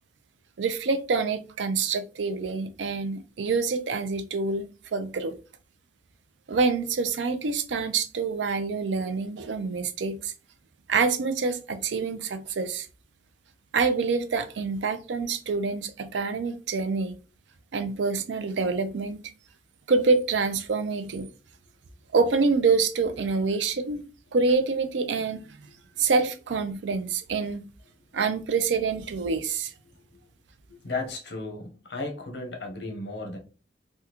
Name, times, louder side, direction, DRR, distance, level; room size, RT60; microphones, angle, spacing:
voice 1, 0.6-5.3 6.5-10.3 10.9-12.9 13.7-17.1 17.7-19.2 19.9-21.3 22.1-24.0 24.3-25.4 26.0-27.7 28.1-29.7, right 4 dB, 90° right, 0.4 m, -26 dB
voice 2, 30.7-33.4, left 3 dB, 70° left, 0.8 m, -35 dB
3.5 x 2.2 x 2.9 m
head